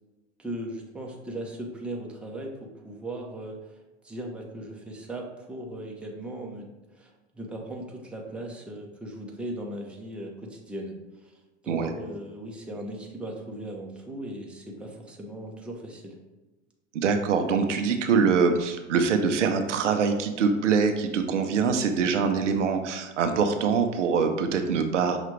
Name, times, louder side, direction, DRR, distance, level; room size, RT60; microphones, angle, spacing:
voice 1, 0.4-6.7 6.9-10.9 11.2-11.3 11.6-16.1, right 1 dB, 5° right, -1 dB, 0.6 m, -38 dB
voice 2, 16.9-25.2, right 5 dB, 90° right, 6 dB, 0.6 m, -24 dB
5.8 x 2.4 x 3.1 m, 1.1 s
hypercardioid pair, 95°, 35 cm